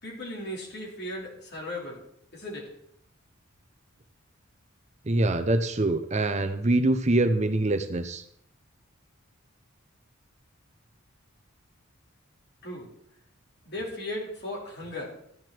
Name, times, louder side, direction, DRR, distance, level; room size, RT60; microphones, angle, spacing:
voice 1, 0.0-2.0 2.3-2.7 12.6-12.9 13.7-15.1, left 1 dB, 55° left, -2 dB, 4.4 m, -36 dB
voice 2, 5.1-8.2, right 2 dB, 35° right, 9 dB, 0.7 m, -24 dB
14.0 x 9.7 x 4.5 m, 0.68 s
head